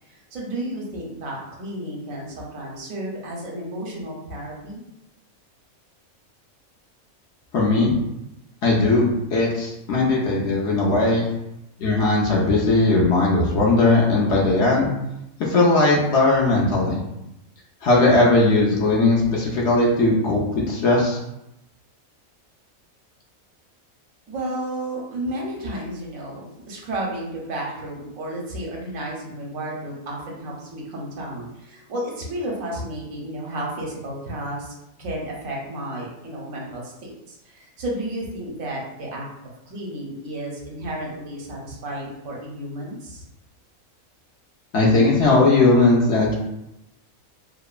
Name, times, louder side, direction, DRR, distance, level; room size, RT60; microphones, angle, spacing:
voice 1, 0.1-4.8 24.3-39.3 39.7-43.2, right 1 dB, 75° right, -2 dB, 1.0 m, -32 dB
voice 2, 7.5-8.0 8.6-11.2 11.8-14.9 15.4-17.0 17.8-21.2 44.7-46.3, left 2 dB, 65° left, -4 dB, 0.8 m, -18 dB
3.0 x 2.1 x 2.3 m, 0.85 s
omnidirectional pair, 1.5 m